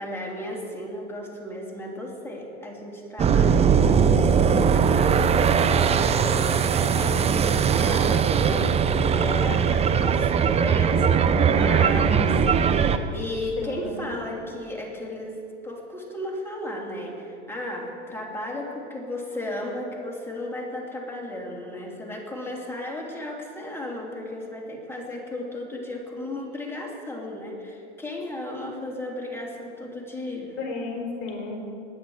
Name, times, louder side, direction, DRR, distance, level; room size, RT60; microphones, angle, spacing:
voice 1, 0.0-5.4 5.7-30.6, left 1 dB, 5° left, -1 dB, 2.9 m, -35 dB
sound 1, 3.2-13.0, right 6 dB, 20° right, 0.6 m, -20 dB
voice 2, 13.6-14.1 30.6-31.6, left 3 dB, 40° left, 1 dB, 4.1 m, -33 dB
21.0 x 9.3 x 4.8 m, 2.6 s
hypercardioid pair, 105°, 35 cm